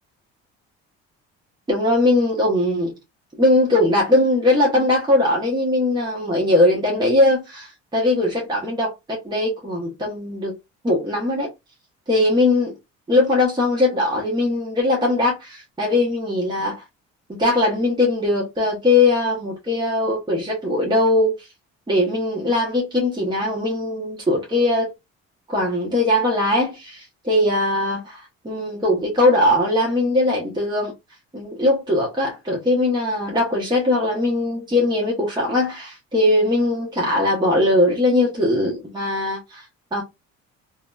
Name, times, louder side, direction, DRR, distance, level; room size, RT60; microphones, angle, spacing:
voice 1, 1.7-2.9 3.4-10.6 10.8-11.5 12.1-12.7 13.1-16.8 17.4-21.5 21.9-24.9 25.5-30.9 31.3-39.6 39.9-40.0, left 2 dB, 15° right, 0.9 m, -20 dB
2.6 x 2.2 x 2.3 m
cardioid pair, 90°, 30 cm